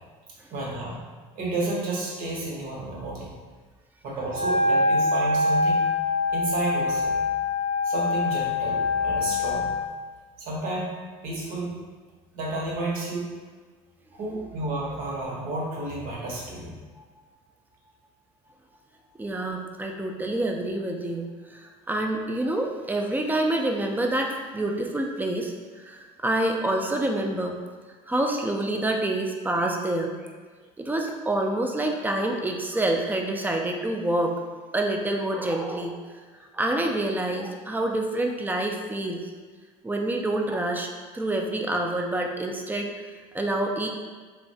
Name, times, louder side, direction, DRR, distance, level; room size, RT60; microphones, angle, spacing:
voice 1, 0.5-1.1 1.4-3.3 4.0-5.8 6.3-7.2 7.8-9.8 10.4-11.0 11.2-11.8 12.3-13.3 14.1-16.8, right 2 dB, 60° right, -3 dB, 0.9 m, -31 dB
Wind instrument woodwind instrument, 4.3-9.9, left 3 dB, 90° right, 1.0 m, -24 dB
voice 2, 19.2-27.5 28.1-30.2 30.8-34.3 34.7-36.2 36.5-39.2 39.8-40.9 41.1-43.9, right 1 dB, 10° right, 2 dB, 0.3 m, -27 dB
3.0 x 2.1 x 2.7 m, 1.4 s
supercardioid pair, 85°, 16 cm